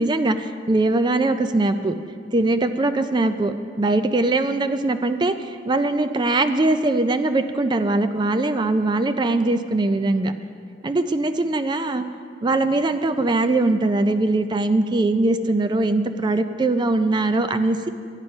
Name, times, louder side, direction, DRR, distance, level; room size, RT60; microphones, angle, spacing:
voice 1, 0.0-1.9 2.3-10.3 10.8-12.0 12.4-17.9, right 2 dB, 25° right, 9 dB, 0.4 m, -21 dB
12.0 x 9.0 x 5.3 m, 2.3 s
head